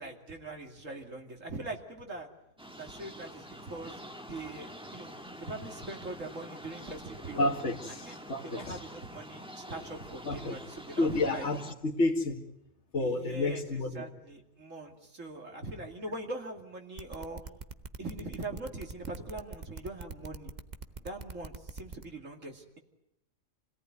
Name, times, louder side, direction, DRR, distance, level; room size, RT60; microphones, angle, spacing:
voice 1, 0.0-2.3 2.8-4.0 4.3-5.1 5.4-7.5 8.0-11.4 13.0-17.4 18.0-20.5 21.0-22.8, right 2 dB, 70° right, 2 dB, 3.0 m, -42 dB
sound 1, 2.6-11.7, equal, 5° right, 1.5 m, -47 dB
voice 2, 7.4-8.8 10.2-10.6 11.0-11.6 11.8-12.4 12.9-14.0, left 2 dB, 55° left, 1 dB, 2.2 m, -30 dB
sound 2, 17.0-22.0, right 4 dB, 35° right, 1.1 m, -43 dB
28.0 x 18.0 x 9.5 m, 0.87 s
omnidirectional pair, 1.4 m